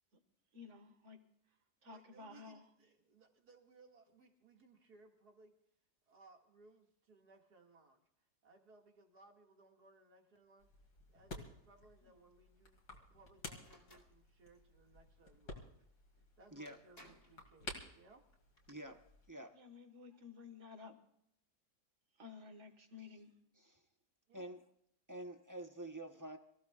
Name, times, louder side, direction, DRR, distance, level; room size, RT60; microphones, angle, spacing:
voice 1, 0.5-1.2 1.8-2.6 19.5-21.0 22.2-23.4, left 5 dB, 45° right, 7 dB, 1.9 m, -54 dB
voice 2, 1.9-5.5 6.1-8.0 8.4-10.7 11.1-15.8 16.4-18.2 24.3-24.5, right 3 dB, 70° right, 2 dB, 2.7 m, -64 dB
sound 1, 10.6-19.3, left 2 dB, 75° left, 2.9 m, -53 dB
sound 2, 13.6-14.1 16.2-16.3 16.7-17.4 18.3-18.7, left 1 dB, 45° left, 3.0 m, -61 dB
voice 3, 18.7-19.6 23.6-23.8 24.3-24.6 25.1-26.4, right 1 dB, 15° right, 5 dB, 0.8 m, -48 dB
26.0 x 15.5 x 2.4 m, 0.74 s
omnidirectional pair, 1.7 m